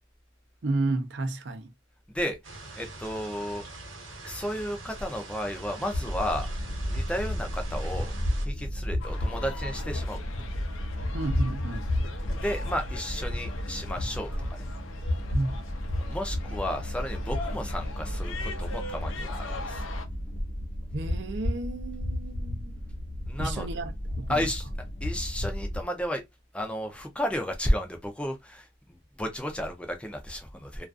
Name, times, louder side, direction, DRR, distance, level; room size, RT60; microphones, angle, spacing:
voice 1, 0.6-1.7 11.1-11.9 15.3-15.6 20.9-22.9 23.4-24.5, right 2 dB, 60° right, 0.5 m, -32 dB
voice 2, 2.1-3.6 4.2-6.5 6.9-8.1 8.4-10.2 12.4-14.7 16.0-19.8 23.3-23.7 24.3-24.7 25.0-26.2 26.5-28.7 29.2-30.8, equal, 5° left, 0.4 m, -33 dB
sound 1, 2.4-8.5, right 2 dB, 80° right, 0.8 m, -43 dB
sound 2, 5.9-25.8, left 1 dB, 70° left, 0.9 m, -32 dB
sound 3, 9.0-20.1, left 3 dB, 85° left, 0.5 m, -42 dB
2.4 x 2.4 x 2.3 m
head